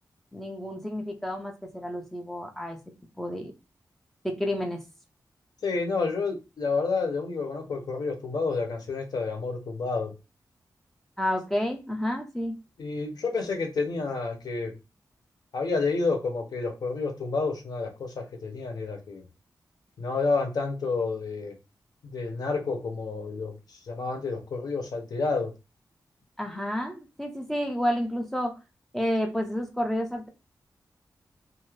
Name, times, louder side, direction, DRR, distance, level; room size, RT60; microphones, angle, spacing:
voice 1, 0.3-2.8 3.2-3.5 4.2-4.8 11.2-12.6 26.4-28.6 28.9-30.3, equal, 5° left, 0.5 m, -30 dB
voice 2, 5.6-10.1 12.8-14.7 15.5-19.2 20.0-21.5 22.0-25.5, left 4 dB, 65° left, 0.8 m, -29 dB
2.7 x 2.4 x 3.1 m
wide cardioid pair, 180°, 7 cm